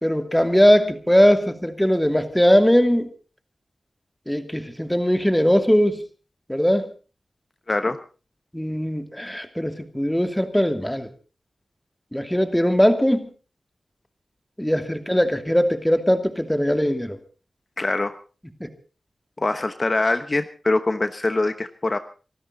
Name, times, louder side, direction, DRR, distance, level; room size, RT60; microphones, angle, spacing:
voice 1, 0.0-3.1 4.3-6.0 6.5-6.9 8.5-11.1 12.1-13.3 14.6-17.2 18.6-18.7, equal, 5° left, 7 dB, 2.7 m, -20 dB
voice 2, 7.7-8.0 17.8-18.2 19.4-22.0, left 2 dB, 45° left, 10 dB, 1.1 m, -23 dB
26.0 x 13.0 x 4.1 m, 0.36 s
cardioid pair, 45°, 0 cm